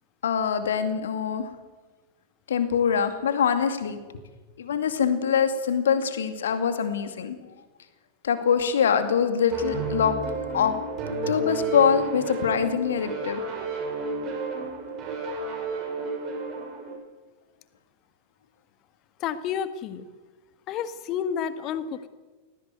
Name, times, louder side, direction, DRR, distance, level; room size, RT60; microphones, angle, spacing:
voice 1, 0.2-1.5 2.5-4.0 4.6-7.4 8.2-10.1 10.5-10.7 11.3-13.4, left 7 dB, 65° left, 9 dB, 2.4 m, -24 dB
sound 1, 9.5-17.0, right 3 dB, 35° right, 6.5 m, -31 dB
voice 2, 19.2-20.1 20.7-22.1, left 8 dB, 35° left, 12 dB, 1.7 m, -30 dB
18.5 x 17.0 x 9.4 m, 1.3 s
figure-of-eight pair, 90°, 0 cm